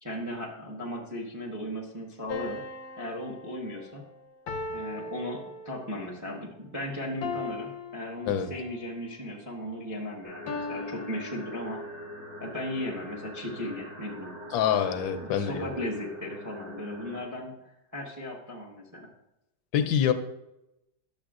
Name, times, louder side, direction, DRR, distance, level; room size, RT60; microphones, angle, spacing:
voice 1, 0.0-2.6 3.0-4.0 4.7-11.8 12.4-14.3 15.2-17.5 17.9-19.1, left 1 dB, 15° right, 0 dB, 0.6 m, -36 dB
sound 1, 2.3-6.0 7.2-8.8 10.5-12.0, left 3 dB, 65° left, 1.0 m, -39 dB
sound 2, 10.2-17.2, left 1 dB, 75° right, 2.6 m, -43 dB
voice 2, 14.5-15.8 19.7-20.1, left 9 dB, 80° left, 9 dB, 1.4 m, -26 dB
10.5 x 7.0 x 2.4 m, 0.89 s
omnidirectional pair, 2.0 m